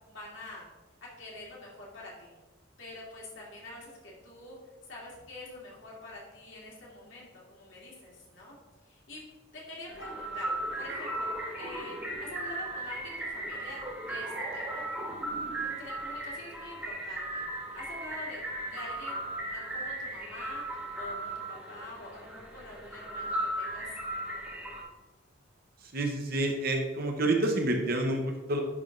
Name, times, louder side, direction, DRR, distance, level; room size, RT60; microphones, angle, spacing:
voice 1, 0.1-0.6 1.0-2.3 2.8-4.6 4.8-8.6 8.8-9.2 9.5-11.3 11.6-14.8 15.6-17.4 17.7-19.2 19.5-20.6 21.0-23.9, left 2 dB, 65° left, -4 dB, 2.1 m, -46 dB
sound 1, 9.9-24.8, right 1 dB, 5° right, 1.0 m, -37 dB
sound 2, 10.0-12.7 13.3-16.0, right 1 dB, 25° right, 1.5 m, -43 dB
voice 2, 25.9-28.6, right 2 dB, 50° right, 3 dB, 0.9 m, -28 dB
9.7 x 3.4 x 3.8 m, 1.2 s
head